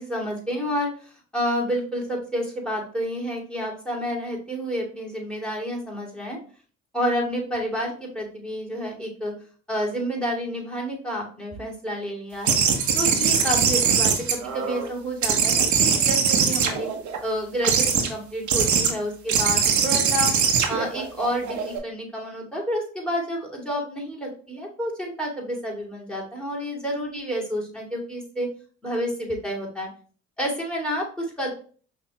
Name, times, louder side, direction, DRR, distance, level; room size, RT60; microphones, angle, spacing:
voice 1, 0.0-6.4 6.9-9.3 9.7-12.6 12.9-16.9 17.2-20.3 20.7-28.5 28.8-29.9 30.4-31.5, equal, 5° left, -1 dB, 2.4 m, -29 dB
sound 1, 12.4-14.9 15.2-17.2 17.6-18.1 18.5-18.9 19.3-21.8, right 6 dB, 70° right, 1.0 m, -21 dB
5.7 x 3.0 x 2.9 m, 0.42 s
supercardioid pair, 60°, 30 cm